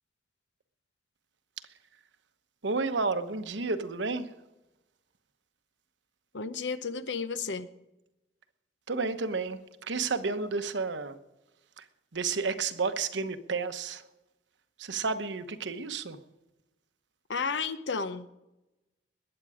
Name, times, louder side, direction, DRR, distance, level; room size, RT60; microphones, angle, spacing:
voice 1, 2.6-4.3 8.9-11.2 11.8-11.9 12.1-14.0 14.8-16.2, right 4 dB, 90° right, 1.0 m, -31 dB
voice 2, 6.3-7.7 17.3-18.4, left 5 dB, 80° left, 0.9 m, -32 dB
21.0 x 8.8 x 5.0 m
head